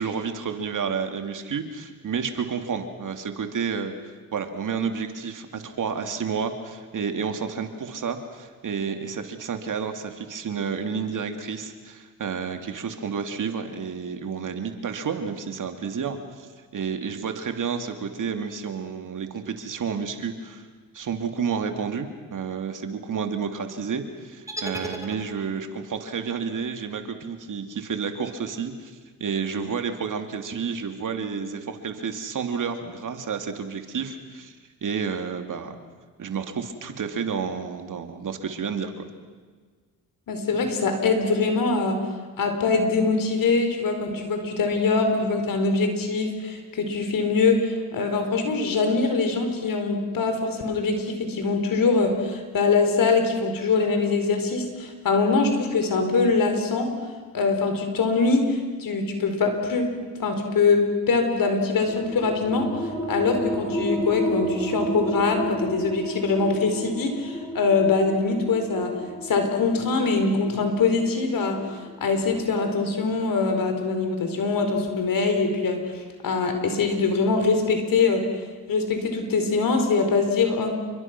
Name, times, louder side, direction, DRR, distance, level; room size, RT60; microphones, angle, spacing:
voice 1, 0.0-3.9 4.3-20.7 20.9-34.5 34.8-35.8 36.2-39.1, right 6 dB, 55° right, 6 dB, 2.8 m, -30 dB
sound 1, 24.5-25.8, right 1 dB, 10° right, 3.6 m, -35 dB
voice 2, 40.3-42.0 42.4-56.9 57.3-59.9 60.2-62.7 63.1-68.9 69.2-71.7 72.0-75.8 76.2-78.3 78.7-80.7, left 4 dB, 65° left, 5 dB, 4.7 m, -23 dB
sound 2, 61.9-73.1, right 1 dB, 10° left, 6.4 m, -32 dB
29.0 x 23.5 x 6.2 m, 1.5 s
cardioid pair, 70°, 37 cm